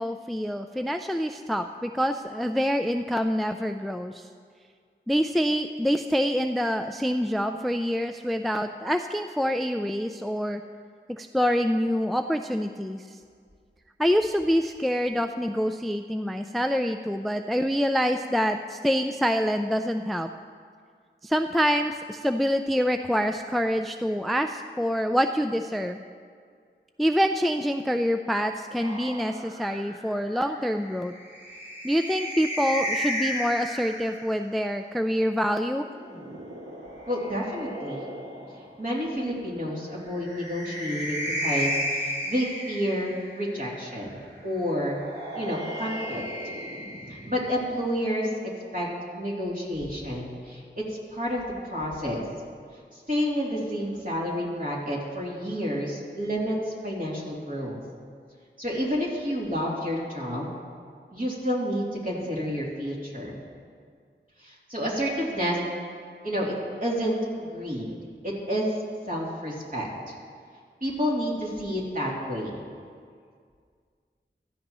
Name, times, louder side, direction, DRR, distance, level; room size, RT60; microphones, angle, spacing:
voice 1, 0.0-4.3 5.1-10.6 11.1-13.2 14.0-20.3 21.2-26.0 27.0-31.1 31.8-35.9, equal, ahead, 6 dB, 0.3 m, -26 dB
sound 1, 28.8-34.3 35.7-38.7 40.0-43.5 44.8-47.7, equal, 60° right, 2.3 m, -34 dB
voice 2, 37.1-38.0 38.8-44.2 44.4-45.0 45.3-46.2 47.1-48.3 48.7-48.9 49.1-52.2 52.9-57.8 58.6-60.5 61.1-63.3 64.4-65.6 66.2-66.5 66.8-67.9 68.2-68.6 69.1-69.9 70.8-72.6, equal, 45° right, -5 dB, 3.0 m, -29 dB
15.5 x 13.0 x 3.0 m, 2.1 s
wide cardioid pair, 50°, 20 cm